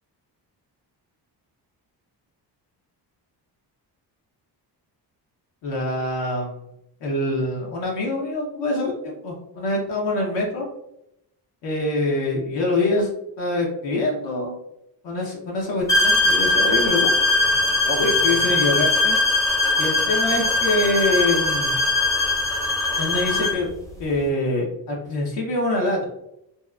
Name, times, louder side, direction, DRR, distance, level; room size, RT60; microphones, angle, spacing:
voice 1, 5.6-6.6 7.0-10.7 11.6-13.1 13.4-14.5 15.0-17.1 17.8-19.2 19.8-21.8 23.0-23.7 24.0-26.1, left 2 dB, 80° left, -2 dB, 0.8 m, -24 dB
sound 1, 15.9-23.6, left 2 dB, 10° left, 0.5 m, -20 dB
2.8 x 2.0 x 2.2 m, 0.81 s
cardioid pair, 105°, 42 cm